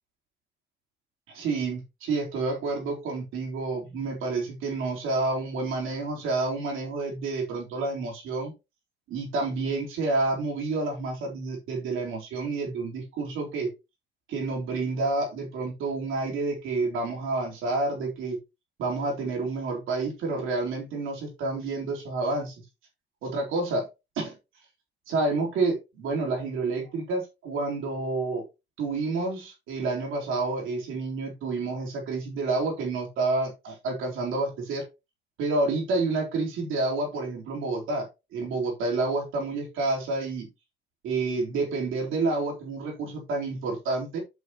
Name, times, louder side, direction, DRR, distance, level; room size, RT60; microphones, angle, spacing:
voice 1, 1.3-8.5 9.1-13.7 14.3-18.4 18.8-22.6 23.2-23.9 24.2-24.4 25.1-28.4 28.8-34.9 35.4-40.5 41.0-44.2, right 3 dB, 90° right, 3.7 m, -29 dB
8.1 x 7.2 x 2.9 m
cardioid pair, 90°, 20 cm